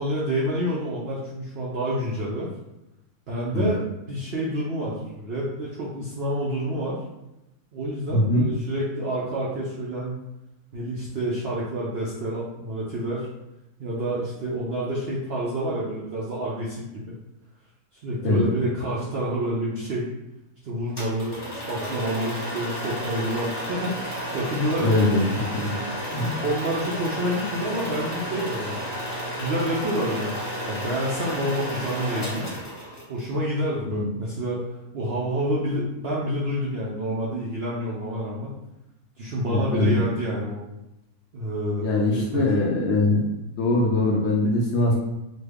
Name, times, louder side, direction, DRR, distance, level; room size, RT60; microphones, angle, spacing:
voice 1, 0.0-2.5 3.3-3.8 4.1-7.0 7.7-10.1 10.7-13.3 13.8-17.1 18.0-20.1 20.6-25.0 26.4-28.9 29.4-32.5 33.1-34.6 34.9-38.6 39.2-40.6 41.3-42.4, right 1 dB, 75° right, -6 dB, 0.5 m, -28 dB
voice 2, 8.1-8.4 18.2-18.4 24.8-25.8 26.1-26.3 33.9-34.1 39.5-40.0 41.8-43.2 43.6-44.9, left 2 dB, 70° left, -2 dB, 0.6 m, -22 dB
sound 1, 21.0-33.3, equal, 20° left, 0.8 m, -32 dB
3.1 x 2.1 x 3.4 m, 0.92 s
omnidirectional pair, 1.6 m